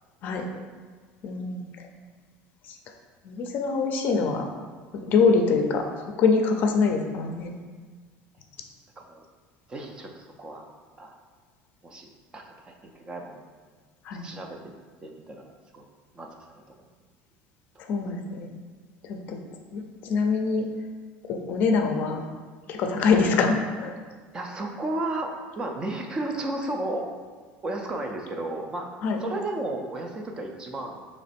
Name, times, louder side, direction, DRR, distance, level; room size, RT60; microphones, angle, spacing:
voice 1, 1.2-1.6 3.2-4.5 4.9-5.8 6.2-7.5 14.1-14.2 17.9-18.5 19.1-19.4 19.7-20.7 21.3-22.2 22.7-23.9 29.0-29.2, left 4 dB, 45° left, 3 dB, 0.5 m, -24 dB
voice 2, 9.7-10.7 11.0-11.2 11.8-13.4 14.1-14.8 15.0-15.5 15.7-15.9 16.1-16.8 24.3-27.1 27.6-28.9 29.2-31.0, right 2 dB, 20° right, 2 dB, 0.4 m, -33 dB
4.1 x 3.0 x 4.2 m, 1.5 s
cardioid pair, 165°, 4 cm